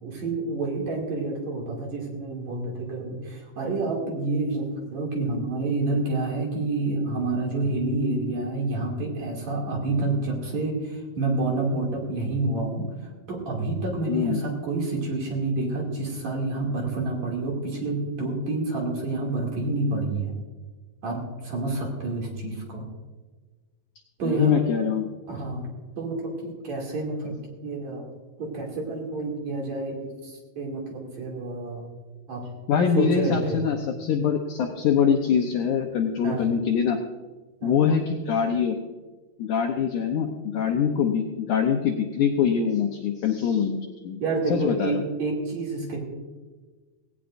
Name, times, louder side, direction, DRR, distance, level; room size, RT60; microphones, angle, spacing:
voice 1, 0.0-12.8 13.3-20.3 21.0-22.9 24.2-24.6 25.3-28.1 28.4-31.8 32.3-32.5 33.0-33.6 36.2-36.4 37.6-37.8 44.2-46.0, right 2 dB, 50° right, -1 dB, 3.6 m, -28 dB
voice 2, 14.1-14.4 24.2-25.1 32.7-37.0 37.6-38.8 39.4-44.2 44.5-45.0, left 7 dB, 75° left, 3 dB, 1.9 m, -24 dB
18.0 x 17.5 x 2.6 m, 1.3 s
omnidirectional pair, 4.5 m